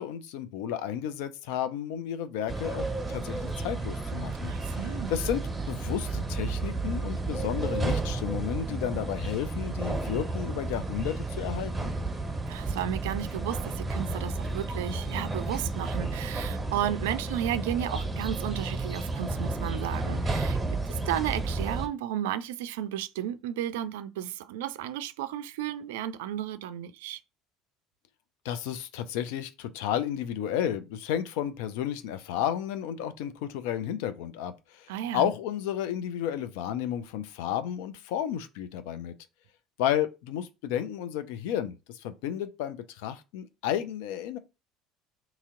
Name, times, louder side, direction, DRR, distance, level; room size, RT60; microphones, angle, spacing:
voice 1, 0.0-4.8 5.1-11.9 28.4-39.1 39.8-44.4, left 10 dB, 70° left, 0.4 m, -32 dB
sound 1, 2.5-21.9, right 3 dB, 10° right, 1.4 m, -32 dB
voice 2, 4.5-5.1 12.5-20.6 20.9-27.2 34.9-35.3, right 11 dB, 75° right, 0.3 m, -33 dB
2.9 x 2.8 x 3.7 m
hypercardioid pair, 65°, 0 cm